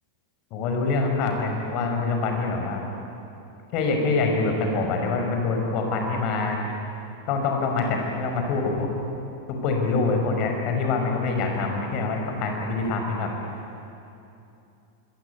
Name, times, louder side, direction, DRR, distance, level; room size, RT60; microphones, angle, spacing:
voice 1, 0.5-2.9 3.7-6.6 7.3-9.0 9.5-13.3, left 3 dB, 40° left, 3 dB, 5.5 m, -25 dB
25.5 x 22.5 x 9.4 m, 2.7 s
figure-of-eight pair, 90°, 0 cm